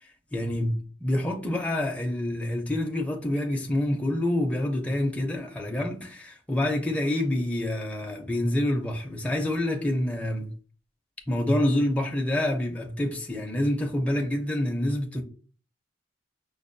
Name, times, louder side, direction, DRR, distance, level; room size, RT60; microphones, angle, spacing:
voice 1, 0.0-10.5 11.3-15.2, left 1 dB, 5° left, 0.4 m, -27 dB
5.2 x 2.2 x 2.5 m
head